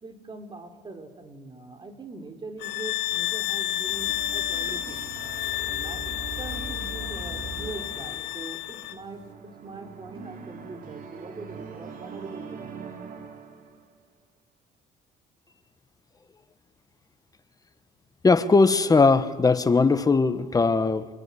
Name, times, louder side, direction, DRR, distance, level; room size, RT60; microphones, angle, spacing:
voice 1, 0.0-5.0 5.7-12.8, right 3 dB, 25° right, 5 dB, 4.1 m, -42 dB
sound 1, 2.6-9.0, left 14 dB, 90° left, 1.0 m, -31 dB
sound 2, 3.9-13.9, right 5 dB, 55° right, 3.6 m, -41 dB
voice 2, 18.2-21.1, left 4 dB, 20° left, 11 dB, 1.5 m, -19 dB
25.0 x 22.0 x 10.0 m, 1.4 s
cardioid pair, 110°, 17 cm